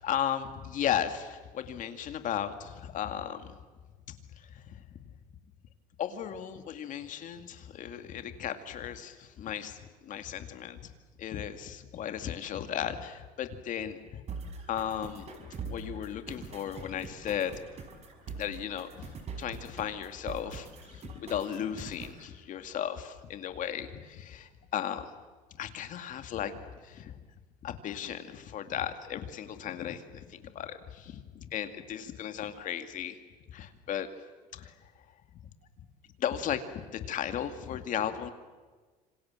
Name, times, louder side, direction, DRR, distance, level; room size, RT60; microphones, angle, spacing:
voice 1, 0.0-3.5 4.5-4.7 6.0-10.9 11.2-14.2 14.7-17.6 18.3-25.1 25.6-27.1 27.6-33.2 33.5-34.1 34.5-34.7 36.2-38.3, left 9 dB, 50° left, 8 dB, 2.3 m, -35 dB
sound 1, 14.3-22.3, right 5 dB, 35° right, 5.3 m, -44 dB
27.5 x 26.0 x 7.6 m, 1.4 s
cardioid pair, 140°, 18 cm